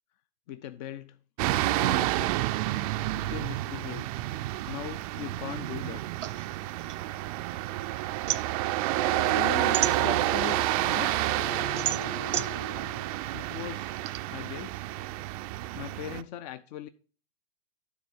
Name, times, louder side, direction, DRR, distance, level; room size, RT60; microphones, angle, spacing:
voice 1, 0.5-1.2 1.8-2.5 3.1-4.1 4.7-6.0 13.3-14.0 14.3-14.9 15.7-16.9, left 12 dB, 40° left, 0.4 m, -40 dB
sound 1, 1.4-16.2, right 16 dB, 35° right, 0.4 m, -29 dB
sound 2, 6.2-7.7 8.0-10.6 11.0-14.2, right 10 dB, 85° right, 0.8 m, -33 dB
Wind instrument woodwind instrument, 9.0-13.1, left 7 dB, 80° left, 1.0 m, -42 dB
voice 2, 9.2-11.3, left 8 dB, 60° left, 1.3 m, -38 dB
9.6 x 3.8 x 6.3 m
hypercardioid pair, 110°, 35 cm